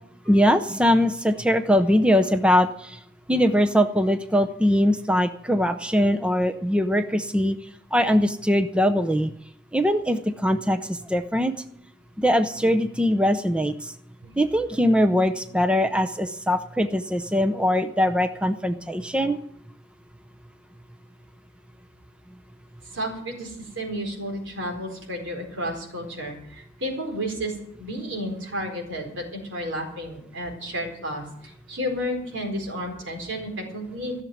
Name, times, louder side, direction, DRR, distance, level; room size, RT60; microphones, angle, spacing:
voice 1, 0.3-3.0 3.3-7.6 7.9-9.3 9.7-11.5 12.2-13.9 14.4-19.4, equal, 5° right, 9 dB, 0.6 m, -21 dB
voice 2, 22.9-34.2, equal, 70° right, 1 dB, 4.4 m, -32 dB
15.5 x 7.2 x 9.3 m, 0.71 s
head